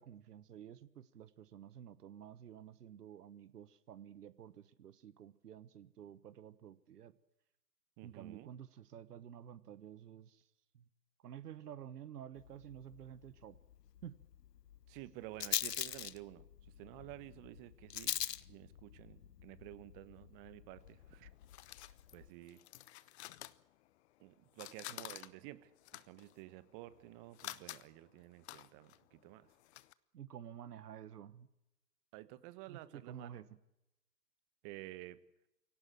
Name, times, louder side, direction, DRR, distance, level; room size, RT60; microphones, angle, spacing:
voice 1, 0.0-7.1 8.0-10.4 10.7-10.8 11.2-13.6 14.0-14.2 24.9-25.0 30.1-31.5 32.7-33.5, right 9 dB, 65° right, 16 dB, 1.4 m, -51 dB
voice 2, 8.0-8.5 14.9-18.2 18.5-21.3 21.8-22.6 24.2-25.7 26.1-29.5 32.1-33.4 34.6-35.2, right 17 dB, 30° right, 15 dB, 1.4 m, -52 dB
Rattle, 12.4-22.3, left 10 dB, 75° left, 1.1 m, -44 dB
sound 1, 20.8-24.2 24.5-29.9, left 15 dB, 40° left, 1.0 m, -51 dB
25.5 x 17.5 x 7.7 m, 0.89 s
hypercardioid pair, 120°, 49 cm